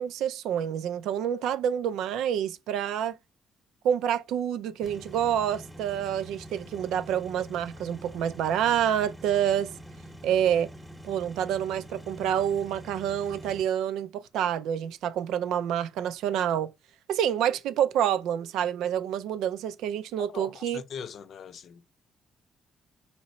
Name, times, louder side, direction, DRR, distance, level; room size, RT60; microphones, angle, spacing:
voice 1, 0.0-3.2 3.8-9.7 10.2-10.7 11.0-16.7 17.1-20.8, right 9 dB, 90° right, 0.5 m, -28 dB
sound 1, 4.8-13.6, equal, 10° right, 0.9 m, -46 dB
voice 2, 20.3-22.0, left 7 dB, 65° left, 0.5 m, -41 dB
4.1 x 3.0 x 4.2 m
cardioid pair, 90°, 0 cm